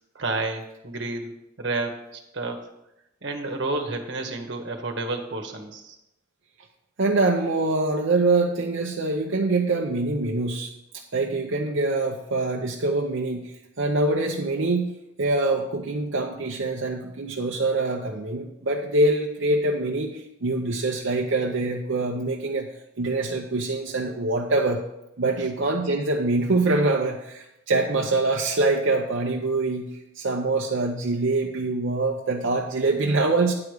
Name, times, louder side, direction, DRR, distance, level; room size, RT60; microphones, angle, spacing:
voice 1, 0.1-2.6 3.2-5.9 25.3-25.5, right 2 dB, 65° right, 4 dB, 1.3 m, -31 dB
voice 2, 7.0-14.9 15.2-22.7 23.0-24.8 25.2-33.5, right 2 dB, 85° right, 0 dB, 0.7 m, -24 dB
9.7 x 4.8 x 6.6 m, 0.88 s
head